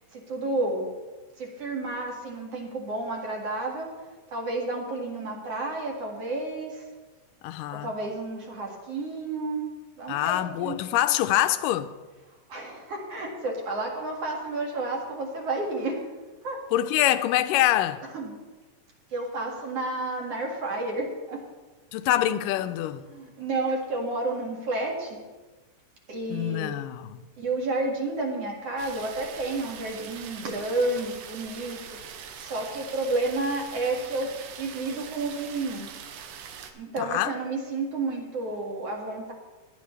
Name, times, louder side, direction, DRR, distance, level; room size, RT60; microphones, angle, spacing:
voice 1, 0.1-0.9 1.4-3.9 4.3-6.8 7.7-9.7 10.0-10.8 12.5-16.0 16.4-16.6 18.1-18.3 19.1-21.5 23.1-25.2 26.1-26.7 27.4-32.0 32.4-35.9 36.7-39.3, right 2 dB, 50° right, 2.8 m, -31 dB
voice 2, 7.4-7.9 10.1-11.9 16.7-18.0 21.9-23.0 26.3-27.2 37.0-37.3, left 13 dB, 85° left, 2.2 m, -25 dB
sound 1, 28.8-36.7, right 8 dB, 85° right, 2.6 m, -42 dB
18.5 x 11.0 x 3.3 m
omnidirectional pair, 3.8 m